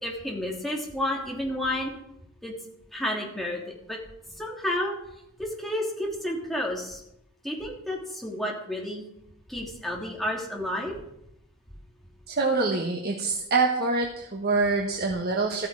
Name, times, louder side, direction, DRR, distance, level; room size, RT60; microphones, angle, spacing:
voice 1, 0.0-1.9 2.4-2.5 2.9-4.0 4.4-5.0 5.4-7.0 7.4-9.0 9.5-11.0, left 1 dB, ahead, -2 dB, 2.9 m, -31 dB
voice 2, 12.3-15.7, right 3 dB, 45° right, 1 dB, 1.5 m, -25 dB
14.0 x 13.5 x 4.9 m, 0.81 s
head